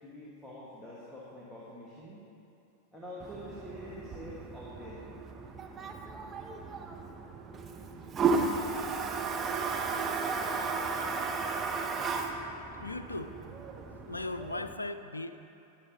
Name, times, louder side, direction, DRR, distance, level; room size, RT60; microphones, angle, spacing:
voice 1, 0.0-2.2 2.9-5.0, equal, 5° left, -7 dB, 1.6 m, -46 dB
Toilet flush, 3.2-14.7, right 4 dB, 20° right, 0.8 m, -34 dB
voice 2, 12.8-13.4 14.1-15.4, left 2 dB, 80° left, 10 dB, 0.4 m, -37 dB
20.5 x 7.2 x 2.8 m, 2.8 s
figure-of-eight pair, 90°, 0 cm